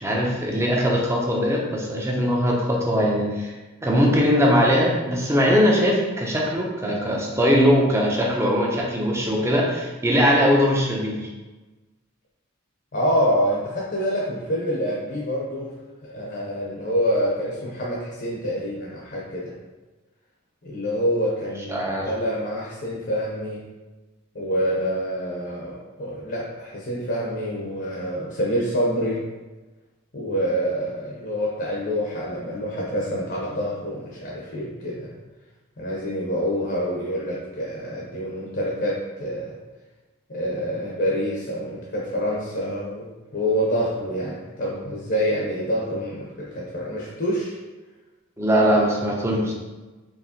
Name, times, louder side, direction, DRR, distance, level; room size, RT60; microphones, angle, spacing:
voice 1, 0.0-3.5 3.8-11.2 21.7-22.0 48.4-49.5, equal, 15° right, -2 dB, 0.6 m, -20 dB
voice 2, 12.9-15.7 16.0-19.5 20.6-23.6 24.3-29.2 30.1-35.1 35.8-39.5 40.3-47.6, equal, 50° left, -4 dB, 0.8 m, -26 dB
4.7 x 3.0 x 2.9 m, 1.2 s
head